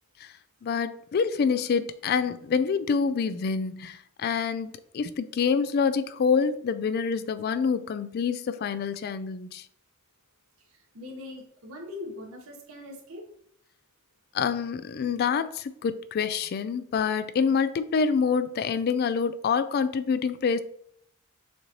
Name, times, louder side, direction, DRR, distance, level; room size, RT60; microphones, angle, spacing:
voice 1, 0.6-9.6 14.3-20.6, left 6 dB, 45° left, 0.3 m, -26 dB
voice 2, 10.6-13.3, left 2 dB, 85° right, 1.2 m, -41 dB
6.4 x 2.8 x 3.0 m
head